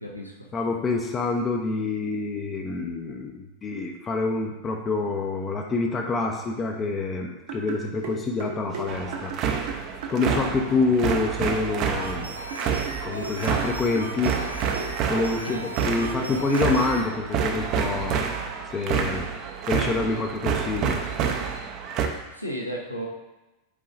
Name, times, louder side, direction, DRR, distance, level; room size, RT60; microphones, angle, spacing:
voice 1, 0.0-0.3 10.4-10.8 15.5-15.9 16.2-16.4 22.3-23.1, equal, 90° left, -2 dB, 0.9 m, -35 dB
voice 2, 0.5-9.3 10.1-12.3 13.0-14.4 15.1-18.2 18.7-19.3 19.7-21.0, left 3 dB, 25° left, 1 dB, 0.6 m, -27 dB
sound 1, 7.5-10.7 11.0-11.3 11.8-11.9 12.5-14.2 14.8-14.9 15.8-17.1, right 4 dB, 55° right, 0.9 m, -37 dB
sound 2, 8.9-22.1, right 7 dB, 40° right, 0.6 m, -28 dB
sound 3, 12.0-17.1, right 1 dB, 85° right, 0.6 m, -38 dB
8.4 x 4.7 x 2.5 m, 1.0 s
figure-of-eight pair, 90°, 0 cm